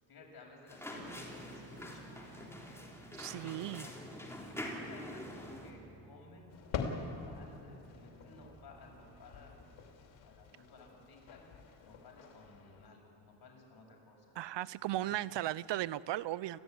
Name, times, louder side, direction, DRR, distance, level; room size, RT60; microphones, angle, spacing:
voice 1, 0.0-2.8 3.4-4.0 4.4-9.8 10.2-11.4 11.8-14.3 14.9-15.2, left 3 dB, 55° left, 0 dB, 7.1 m, -57 dB
sound 1, 0.7-5.7, left 1 dB, 5° left, 3.8 m, -45 dB
sound 2, 0.9-9.3, right 2 dB, 40° right, 4.7 m, -57 dB
voice 2, 3.2-3.9 14.4-16.6, right 14 dB, 65° right, 19 dB, 0.6 m, -36 dB
sound 3, 6.5-12.9, left 5 dB, 80° left, 2.7 m, -45 dB
29.0 x 15.5 x 9.5 m, 2.8 s
cardioid pair, 125°, 46 cm